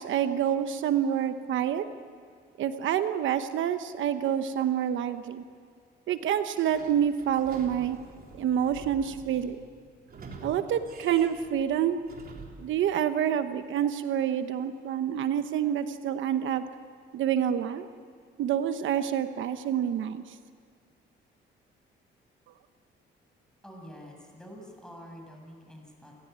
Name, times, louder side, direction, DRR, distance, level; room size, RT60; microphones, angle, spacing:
voice 1, 0.0-1.8 2.6-5.4 6.1-8.0 8.4-9.6 10.4-12.0 12.6-16.6 17.1-17.9 18.4-20.2, right 9 dB, 75° right, 10 dB, 1.0 m, -27 dB
Sliding door / Squeak, 6.6-12.7, right 3 dB, 50° right, 3.9 m, -47 dB
voice 2, 23.6-26.1, equal, 5° left, 1 dB, 7.5 m, -47 dB
29.5 x 16.5 x 9.5 m, 2.1 s
cardioid pair, 90°, 20 cm